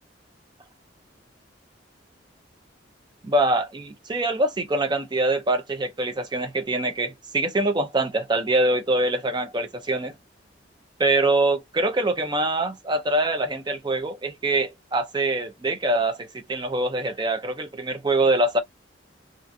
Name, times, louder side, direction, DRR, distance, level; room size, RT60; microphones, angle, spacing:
voice 1, 3.2-10.1 11.0-18.6, right 2 dB, 25° right, 0.4 m, -24 dB
2.4 x 2.3 x 2.6 m
head